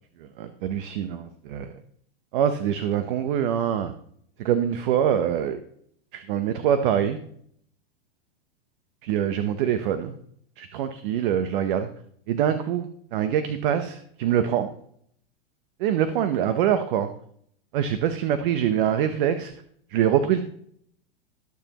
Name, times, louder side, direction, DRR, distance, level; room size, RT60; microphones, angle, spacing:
voice 1, 0.2-1.8 2.3-3.9 4.4-5.6 6.1-7.2 9.0-10.2 10.6-11.9 12.3-14.7 15.8-17.1 17.7-19.5 19.9-20.4, right 9 dB, 55° right, 10 dB, 1.0 m, -24 dB
21.0 x 7.1 x 3.0 m, 0.67 s
hypercardioid pair, 115°, 30 cm